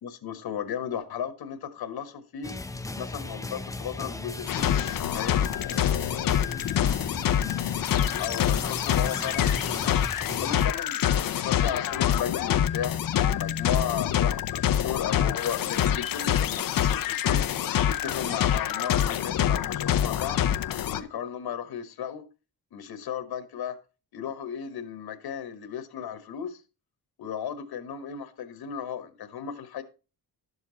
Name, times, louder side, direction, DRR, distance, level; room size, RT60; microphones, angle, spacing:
voice 1, 0.0-2.5 2.9-4.7 5.1-5.5 8.2-10.0 10.4-12.9 13.3-17.4 17.8-20.4 20.9-22.2 22.7-23.8 24.1-26.6 27.2-29.8, left 8 dB, 90° left, 1.6 m, -35 dB
sound 1, 2.4-10.7, left 2 dB, 10° left, 0.5 m, -38 dB
sound 2, 4.5-21.0, left 10 dB, 65° left, 0.8 m, -26 dB
12.0 x 7.2 x 4.1 m
wide cardioid pair, 160°, 37 cm